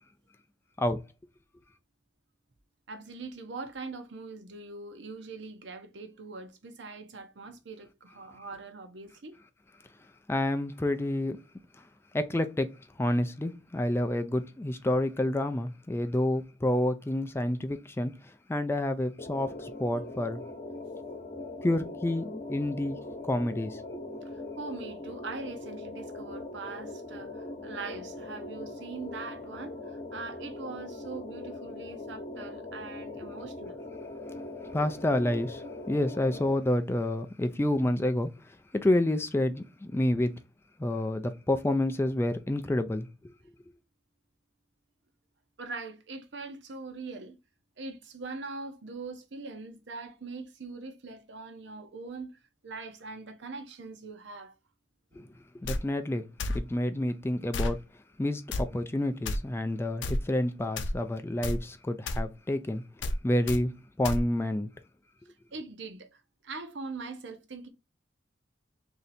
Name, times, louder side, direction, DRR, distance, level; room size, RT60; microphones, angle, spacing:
voice 1, 2.9-9.3 24.2-33.8 45.6-47.4 47.8-54.5 55.1-55.3 65.5-67.7, right 3 dB, 75° right, 0.7 m, -42 dB
voice 2, 10.3-11.4 11.8-11.9 12.1-12.7 13.0-20.4 21.6-23.0 23.2-23.8 34.7-40.3 40.8-43.1 55.1-55.3 55.6-56.3 56.5-57.8 58.2-62.8 63.2-64.7, left 1 dB, 15° left, 0.3 m, -29 dB
sound 1, 19.2-36.6, left 2 dB, 40° left, 0.9 m, -41 dB
sound 2, 55.6-55.8 56.4-56.6 57.5-57.8 58.5-58.6 59.2-59.4 60.0-60.2 60.8-61.0 61.4-61.6 62.1-62.2 63.0-63.2 63.5-63.6 64.0-64.2, left 1 dB, 80° left, 0.6 m, -30 dB
3.2 x 2.7 x 4.0 m
head